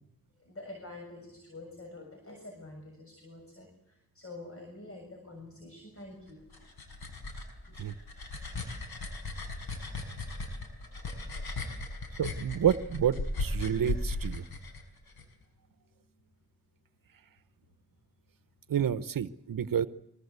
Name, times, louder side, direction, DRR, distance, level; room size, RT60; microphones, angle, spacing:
voice 1, 0.4-6.4, left 2 dB, 40° left, 3 dB, 7.1 m, -47 dB
sound 1, 6.3-15.2, left 2 dB, 90° left, 5.9 m, -37 dB
voice 2, 12.2-14.4 18.7-19.9, right 9 dB, 65° right, 12 dB, 0.9 m, -29 dB
25.5 x 23.0 x 8.3 m, 0.83 s
cardioid pair, 85°, 36 cm